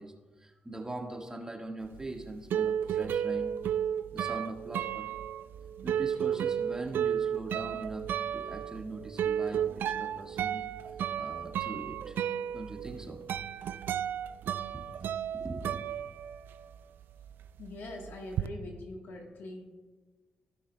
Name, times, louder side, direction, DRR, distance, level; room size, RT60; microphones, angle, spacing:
voice 1, 0.0-3.5 4.1-5.1 5.8-8.1 8.3-10.6 11.1-12.2 12.5-13.2 14.7-14.8 15.3-15.8, right 2 dB, 20° right, 1 dB, 1.5 m, -41 dB
sound 1, 1.9-16.7 17.0-18.5, right 9 dB, 80° right, 0.3 m, -33 dB
voice 2, 17.6-19.9, left 2 dB, 75° left, 2 dB, 1.2 m, -43 dB
16.5 x 6.0 x 2.2 m, 1.3 s
supercardioid pair, 60°, 3 cm